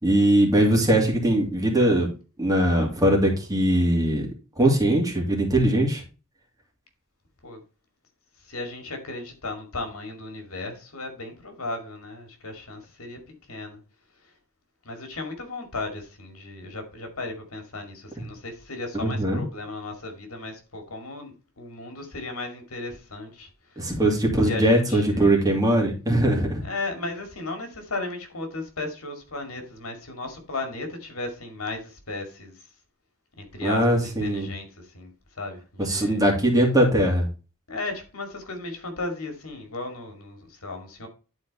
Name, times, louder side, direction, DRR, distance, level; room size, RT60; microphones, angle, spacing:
voice 1, 0.0-2.1 2.4-4.3 4.6-6.0 18.2-18.3 19.0-19.4 23.8-26.6 33.6-34.5 35.8-37.3, right 1 dB, 15° right, 2.5 m, -21 dB
voice 2, 8.4-13.2 13.5-13.8 14.8-23.9 24.5-25.6 26.6-32.6 33.4-35.1 35.4-36.2 37.7-41.1, left 2 dB, 80° left, 2.4 m, -35 dB
11.0 x 4.4 x 4.2 m
head